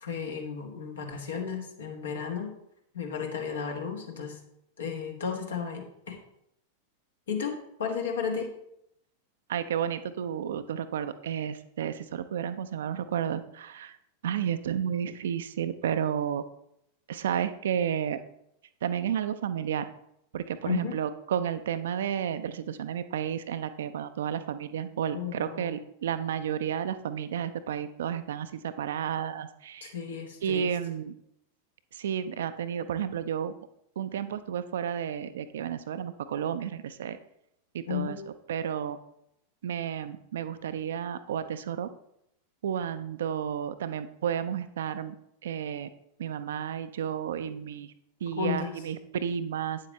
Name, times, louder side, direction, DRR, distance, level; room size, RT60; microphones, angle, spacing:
voice 1, 0.0-2.5 2.9-4.4 4.8-6.2 7.3-8.5 20.6-20.9 25.1-25.8 29.8-30.7 37.9-38.2 48.4-48.7, left 6 dB, 65° left, 4 dB, 1.4 m, -33 dB
voice 2, 9.5-14.0 14.2-16.4 17.1-18.2 18.8-19.9 20.3-29.9 30.4-31.1 31.9-33.5 34.0-37.2 37.7-38.2 38.5-39.0 39.6-41.9 42.6-45.2 45.4-45.9 46.2-47.9 48.2-49.8, right 8 dB, 60° right, 11 dB, 0.5 m, -32 dB
9.1 x 7.4 x 3.1 m, 0.77 s
figure-of-eight pair, 90°, 0 cm